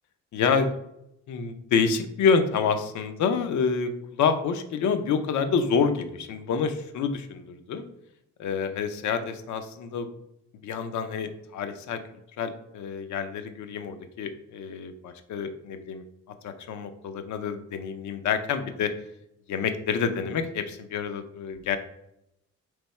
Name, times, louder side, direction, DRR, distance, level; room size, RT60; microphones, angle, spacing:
voice 1, 0.3-0.7 1.3-7.8 8.4-10.1 10.6-12.0 12.4-16.0 16.4-18.9 19.5-21.8, left 6 dB, 70° left, 8 dB, 0.6 m, -27 dB
3.4 x 3.4 x 4.2 m, 0.82 s
cardioid pair, 90°, 30 cm